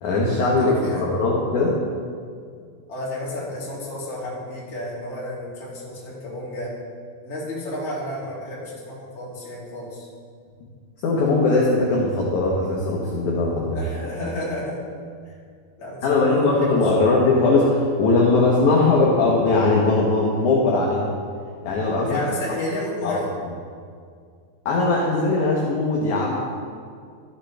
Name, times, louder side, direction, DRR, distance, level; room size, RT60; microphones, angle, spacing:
voice 1, 0.0-0.7 1.0-1.7 11.0-13.8 16.0-21.1 21.6-22.3 23.0-23.2 24.7-26.3, left 3 dB, 70° left, -3 dB, 1.9 m, -20 dB
voice 2, 0.6-1.1 2.9-6.7 7.2-10.1 13.7-14.8 15.8-16.8 22.1-23.3, left 1 dB, 25° left, -7 dB, 1.8 m, -31 dB
13.5 x 7.8 x 3.4 m, 2.1 s
omnidirectional pair, 4.9 m